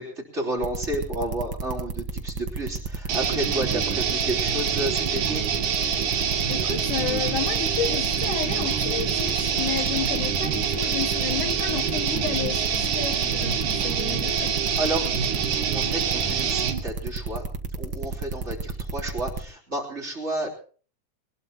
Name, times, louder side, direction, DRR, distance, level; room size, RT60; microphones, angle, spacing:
voice 1, 0.0-5.4 14.8-15.1 15.7-17.4 17.8-20.5, right 1 dB, 20° right, 3.6 m, -31 dB
sound 1, 0.6-19.4, right 4 dB, 45° right, 1.8 m, -32 dB
sound 2, 3.1-16.8, right 7 dB, 75° right, 3.3 m, -26 dB
voice 2, 6.5-14.5, left 9 dB, 80° left, 2.7 m, -31 dB
23.0 x 20.0 x 3.0 m
omnidirectional pair, 3.6 m